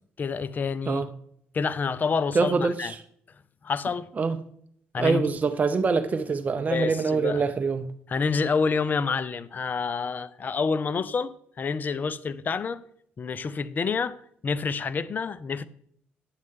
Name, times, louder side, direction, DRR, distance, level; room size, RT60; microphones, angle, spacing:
voice 1, 0.2-1.0 1.5-2.9 3.6-4.1 4.9-5.3 6.7-7.4 8.1-12.8 13.2-15.6, left 5 dB, 40° left, 0.6 m, -28 dB
voice 2, 2.3-2.9 4.2-4.4 5.0-7.9, right 4 dB, 35° right, 0.6 m, -24 dB
9.7 x 7.6 x 3.6 m
supercardioid pair, 70°, 5 cm